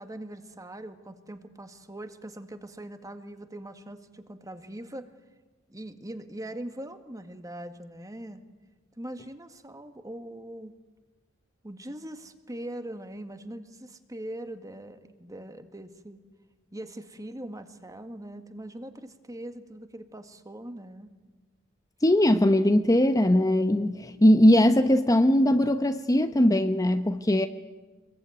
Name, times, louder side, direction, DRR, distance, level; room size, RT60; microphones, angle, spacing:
voice 1, 0.0-5.1 5.7-8.4 9.0-10.7 11.6-16.2 16.7-21.1, right 1 dB, 15° right, 1.8 m, -41 dB
voice 2, 22.0-27.5, left 1 dB, 15° left, 0.9 m, -20 dB
27.0 x 22.0 x 9.5 m
head